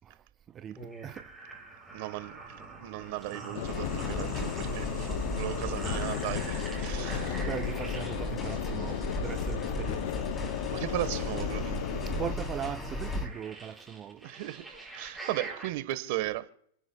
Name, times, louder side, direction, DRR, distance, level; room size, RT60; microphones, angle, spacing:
voice 1, 0.5-1.3 7.4-10.3 12.1-14.2, right 9 dB, 30° right, 0.5 m, -39 dB
sound 1, 0.8-15.7, right 3 dB, 5° right, 5.4 m, -45 dB
voice 2, 1.9-7.4 8.5-8.6 10.7-12.1 14.2-14.6 14.9-16.5, right 17 dB, 60° right, 1.1 m, -36 dB
sound 2, 3.5-12.4, left 15 dB, 65° left, 0.4 m, -35 dB
sound 3, 3.6-13.3, equal, 20° left, 3.3 m, -36 dB
29.5 x 10.0 x 2.2 m
hypercardioid pair, 120°, 0 cm